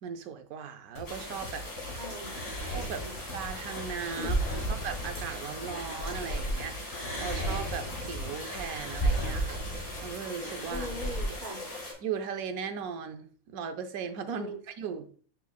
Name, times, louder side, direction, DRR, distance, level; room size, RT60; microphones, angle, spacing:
voice 1, 0.0-1.7 2.7-4.4 4.7-6.8 7.2-10.9 12.0-15.2, right 7 dB, 80° right, 8 dB, 1.2 m, -38 dB
sound 1, 1.0-8.5, left 1 dB, 85° left, 1.7 m, -44 dB
sound 2, 1.0-11.9, left 1 dB, 65° left, 3.2 m, -41 dB
voice 2, 2.0-2.5 2.9-3.1 4.1-4.3 10.7-11.6 14.3-14.6, left 1 dB, 50° right, -1 dB, 2.3 m, -40 dB
sound 3, 2.1-6.5 6.8-11.3, right 1 dB, 25° left, 2.2 m, -34 dB
7.2 x 5.7 x 2.3 m, 0.43 s
omnidirectional pair, 1.5 m